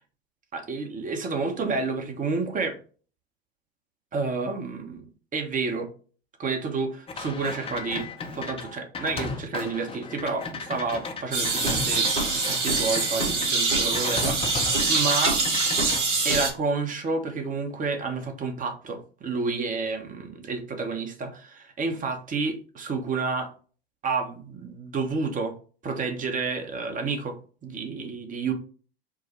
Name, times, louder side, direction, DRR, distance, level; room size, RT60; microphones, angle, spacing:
voice 1, 0.5-2.8 4.1-5.0 5.3-5.9 6.4-8.1 8.3-15.4 16.2-23.5 24.0-25.5 25.8-27.4 27.6-28.5, right 4 dB, 25° right, 5 dB, 1.0 m, -30 dB
sound 1, 7.1-13.5 13.9-15.2 15.4-16.0, left 4 dB, 20° left, 0.8 m, -35 dB
sound 2, 11.3-16.5, right 3 dB, 55° right, 2.1 m, -24 dB
4.7 x 2.2 x 4.3 m, 0.40 s
figure-of-eight pair, 80°, 31 cm